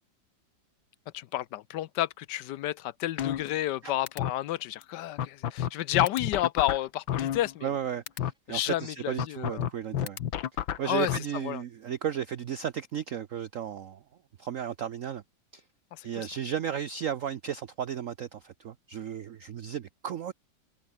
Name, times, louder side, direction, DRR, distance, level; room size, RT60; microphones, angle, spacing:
voice 1, 1.1-7.7 8.5-9.7 10.8-11.6 15.9-16.3, left 13 dB, 70° left, 1.2 m, -31 dB
sound 1, 3.2-3.8 4.1-4.3 4.8-4.9 5.2-7.8 8.1-8.3 9.2-11.2, left 10 dB, 90° left, 1.9 m, -30 dB
voice 2, 7.6-10.2 10.8-14.0 14.4-15.2 15.5-15.6 16.0-20.3, right 9 dB, 60° right, 0.9 m, -34 dB
omnidirectional pair, 2.1 m